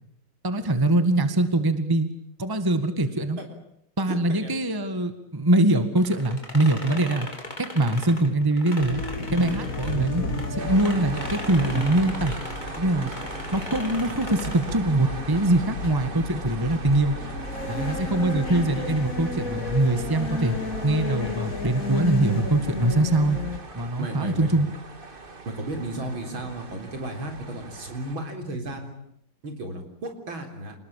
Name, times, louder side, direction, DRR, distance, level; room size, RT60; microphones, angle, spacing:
voice 1, 0.4-2.1 2.4-3.4 4.0-7.3 7.6-9.0 9.3-10.2 10.5-12.4 12.8-13.1 13.5-17.2 17.7-20.6 20.8-23.4 23.7-24.7, right 1 dB, 10° right, 10 dB, 1.7 m, -23 dB
voice 2, 4.1-4.6 9.8-10.1 24.0-24.5 25.5-29.0 29.4-30.7, right 1 dB, 65° right, 5 dB, 4.7 m, -34 dB
sound 1, 6.0-10.5 10.8-14.8, left 1 dB, 20° left, 3.6 m, -39 dB
sound 2, 8.8-23.6, left 2 dB, 40° left, 3.6 m, -32 dB
sound 3, 10.6-28.2, right 3 dB, 25° right, 1.8 m, -40 dB
29.0 x 20.0 x 8.9 m, 0.73 s
omnidirectional pair, 2.4 m